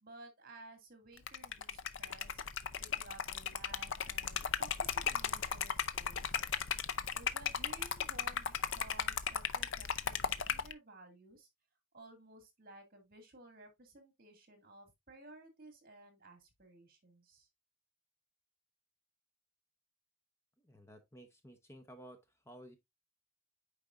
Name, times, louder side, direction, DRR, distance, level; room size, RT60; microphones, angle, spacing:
voice 1, 0.0-2.4 2.8-6.7 7.1-11.5 11.9-17.5, right 2 dB, 45° right, 2.2 m, -56 dB
Liquid, 1.2-10.7, left 7 dB, 75° left, 0.6 m, -36 dB
voice 2, 20.6-22.8, equal, 15° left, 0.8 m, -55 dB
8.6 x 4.9 x 2.5 m
head